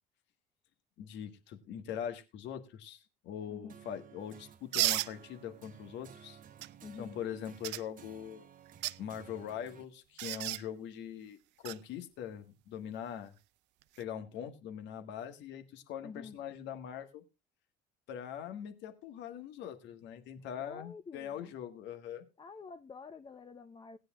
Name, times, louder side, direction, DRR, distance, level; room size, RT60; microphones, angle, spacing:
voice 1, 1.0-6.4 7.0-8.5 9.0-13.3 14.0-17.2 18.1-22.2, left 9 dB, 60° left, 1.6 m, -42 dB
sound 1, 3.7-9.8, right 9 dB, 40° right, 1.0 m, -56 dB
sound 2, 4.7-5.1 6.6-6.7 7.6-7.8 8.7-9.0 10.2-10.6 11.6-11.8 13.8-14.0, right 18 dB, 60° right, 0.5 m, -32 dB
voice 2, 6.8-7.2 16.0-16.4 20.6-21.5 22.4-24.0, left 5 dB, 25° left, 0.8 m, -48 dB
18.0 x 9.4 x 2.4 m
hypercardioid pair, 60°, 21 cm